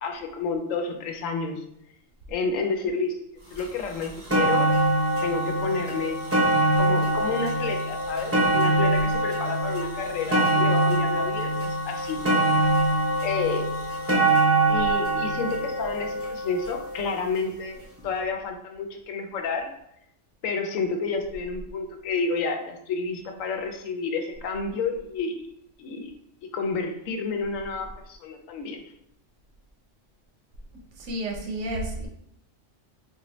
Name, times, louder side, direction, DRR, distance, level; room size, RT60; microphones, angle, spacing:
voice 1, 0.0-1.6 2.3-3.2 3.5-4.7 5.2-6.2 6.8-12.2 13.2-13.8 14.7-19.7 20.4-25.4 25.8-26.1 26.5-28.8, left 4 dB, 85° left, 4 dB, 1.0 m, -30 dB
sound 1, 3.6-3.7 4.0-17.2 18.0-18.1, right 2 dB, 20° right, 0.4 m, -24 dB
voice 2, 30.7-32.1, right 1 dB, 80° right, 0 dB, 1.2 m, -32 dB
3.7 x 2.7 x 3.0 m, 0.76 s
omnidirectional pair, 1.3 m